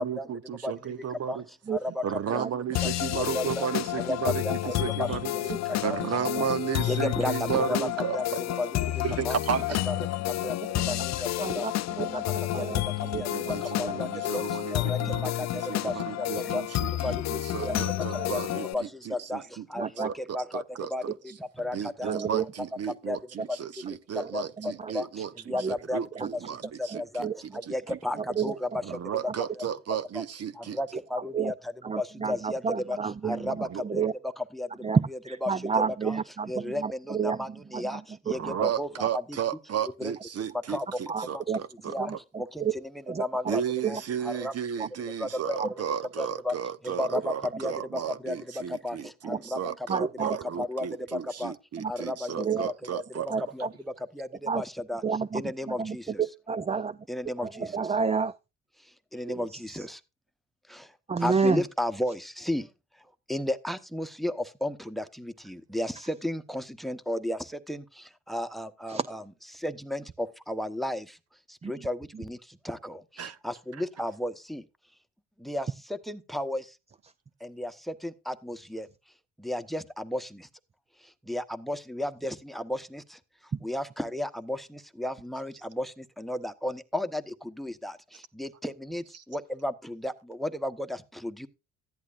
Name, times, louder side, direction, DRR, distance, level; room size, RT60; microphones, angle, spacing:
voice 1, 0.0-1.4 2.0-5.3 5.8-8.4 9.0-10.0 13.1-21.1 21.6-28.0 28.8-30.8 33.5-33.8 38.3-42.2 43.5-53.3 73.2-73.4 89.1-89.2, right 9 dB, 55° right, 0.9 m, -34 dB
voice 2, 1.7-2.4 2.8-3.7 4.0-4.7 5.0-5.1 5.8-6.0 6.8-8.7 9.2-9.4 9.9-10.0 10.4-10.5 10.9-11.0 11.5-11.6 12.0-12.1 12.5-12.7 13.2-13.3 13.8-14.4 14.7-15.0 15.8-16.6 17.0-17.2 17.6-18.8 19.1-19.4 19.7-20.6 20.9-21.0 21.6-22.1 23.1-23.2 24.3-24.4 24.9-25.1 25.5-26.0 26.8-26.9 27.1-27.3 27.5-28.2 28.4-28.7 30.1-30.2 30.6-31.5 32.0-32.6 32.9-33.0 33.2-33.5 33.9-34.0 34.5-34.7 35.4-35.5 36.0-36.2 36.5-38.0 38.3-39.2 40.0-40.1 40.7-40.8 41.3-41.4 41.9-42.1 42.4-42.6 43.2-43.6 43.9-44.0 44.2-44.5 45.2-45.6 46.2-46.5 46.8-48.4 48.8-49.0 49.2-49.6 50.0-50.1 50.6-51.5 51.9-53.0 53.5-53.7 54.2-55.0 55.3-56.0 57.1-57.7 59.1-60.0 61.2-62.6 63.3-67.4 67.7-67.8 68.3-69.2 69.6-71.0 71.7-72.4 72.6-73.0 73.4-74.6 75.4-75.7 76.1-76.6 77.4-77.7 78.0-78.9 79.4-80.3 81.3-83.0 83.6-85.9 86.2-87.2 87.6-88.0 88.4-89.0 89.3-91.5, left 1 dB, ahead, 1.1 m, -33 dB
sound 1, 2.7-18.7, left 15 dB, 60° left, 0.5 m, -30 dB
voice 3, 10.6-11.1 11.4-12.8 13.1-14.0 16.3-16.6 17.6-17.8 18.1-18.3 19.8-20.1 22.0-22.5 23.4-23.5 24.2-24.3 24.6-24.9 25.5-25.7 26.1-26.3 26.9-27.6 28.1-28.6 31.2-31.5 31.8-34.1 34.8-38.7 41.1-41.6 42.0-42.7 43.1-44.0 44.8-44.9 45.6-45.7 49.3-49.4 49.9-50.4 51.8-51.9 52.4-52.7 53.3-53.7 54.5-54.6 55.0-57.0 57.4-58.4 59.3-59.9 61.1-61.6 68.9-69.1 71.6-71.9 72.1-72.2, right 6 dB, 20° right, 0.5 m, -31 dB
14.5 x 10.5 x 2.5 m
cardioid pair, 90°, 30 cm